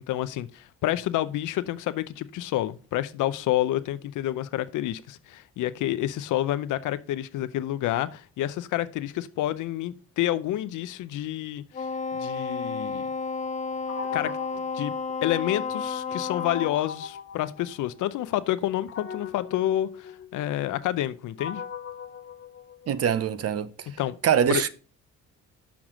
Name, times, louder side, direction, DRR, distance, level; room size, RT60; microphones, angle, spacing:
voice 1, 0.0-13.1 14.1-14.3 14.7-14.9 15.2-21.6 24.0-24.2 24.5-24.6, left 13 dB, 80° left, 0.6 m, -29 dB
Wind instrument woodwind instrument, 11.7-16.8, left 5 dB, 25° left, 0.5 m, -32 dB
sound 1, 13.9-15.7 16.4-18.2 18.9-23.2, left 7 dB, 45° left, 1.4 m, -39 dB
voice 2, 22.9-23.7 24.2-24.7, right 8 dB, 55° right, 0.7 m, -23 dB
6.1 x 5.9 x 5.0 m
cardioid pair, 90°, 30 cm